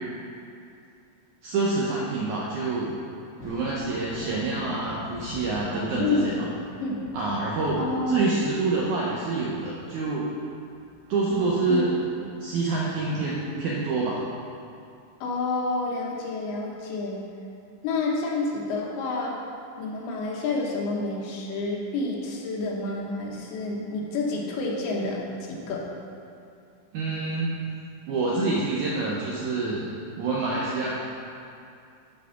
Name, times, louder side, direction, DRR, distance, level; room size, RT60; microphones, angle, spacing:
voice 1, 1.4-2.9 3.4-6.4 7.1-10.3 11.1-12.0 12.4-14.2 26.9-27.7 28.1-29.9 30.2-30.9, right 3 dB, 80° right, -5 dB, 1.8 m, -27 dB
Thunder, 3.3-12.5 12.9-14.1 15.7-15.8 16.6-16.7, left 1 dB, 15° right, 0.4 m, -44 dB
voice 2, 6.0-6.4 6.8-7.1 7.8-8.3 11.7-11.8 15.2-17.2 17.8-19.4 19.8-25.9, left 3 dB, 85° left, -2 dB, 3.1 m, -29 dB
10.0 x 4.3 x 5.8 m, 2.5 s
omnidirectional pair, 4.4 m